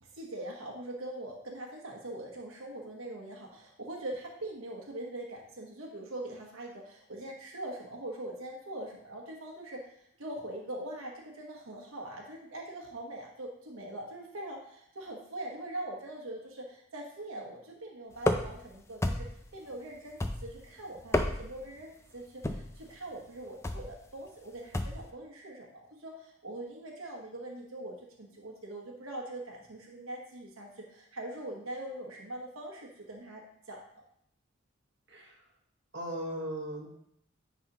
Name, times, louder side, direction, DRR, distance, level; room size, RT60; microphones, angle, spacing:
voice 1, 0.0-9.9 10.2-19.3 19.5-33.4 33.7-34.0, right 1 dB, 85° right, 0 dB, 1.1 m, -42 dB
sound 1, 18.2-18.7 19.0-19.5 20.2-20.7 21.0-21.6 22.4-22.8 23.6-23.9 24.7-25.1, left 1 dB, 15° left, 0.3 m, -31 dB
voice 2, 35.9-36.9, right 1 dB, 55° right, -2 dB, 1.3 m, -37 dB
9.8 x 4.1 x 2.9 m, 0.70 s
head